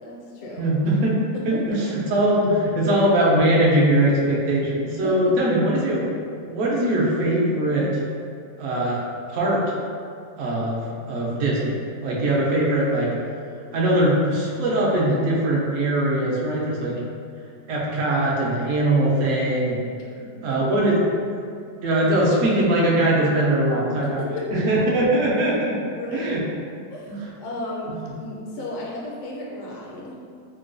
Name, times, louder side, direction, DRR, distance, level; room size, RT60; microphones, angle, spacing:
voice 1, 0.0-0.6 1.3-1.6 5.0-5.2 20.2-20.8 24.0-24.7 25.9-26.3 26.9-27.9 28.2-30.1, left 2 dB, 70° left, -4 dB, 0.7 m, -34 dB
voice 2, 0.6-1.2 1.5-6.1 6.4-7.9 8.6-9.0 9.3-9.6 10.4-10.8 11.1-13.1 13.7-16.9 17.7-19.8 20.4-21.0 21.8-24.2 24.5-25.8 26.1-26.4 27.1-27.3 28.0-28.1, right 1 dB, 70° right, -4 dB, 0.8 m, -21 dB
3.8 x 2.2 x 2.5 m, 2.4 s
omnidirectional pair, 1.9 m